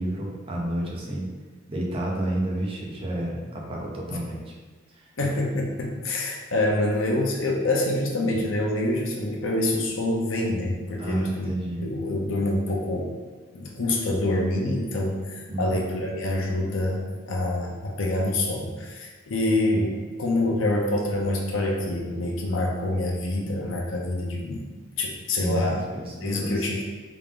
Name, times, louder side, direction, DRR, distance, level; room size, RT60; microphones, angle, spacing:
voice 1, 0.0-1.3 1.7-4.5 4.9-5.1 11.0-11.9 15.5-15.8 25.4-26.7, right 1 dB, 30° right, -2 dB, 0.6 m, -30 dB
voice 2, 5.2-11.5 11.8-13.1 13.5-24.7 25.0-25.9 26.2-26.8, left 1 dB, 75° left, -1 dB, 0.6 m, -26 dB
3.5 x 2.5 x 3.5 m, 1.4 s
head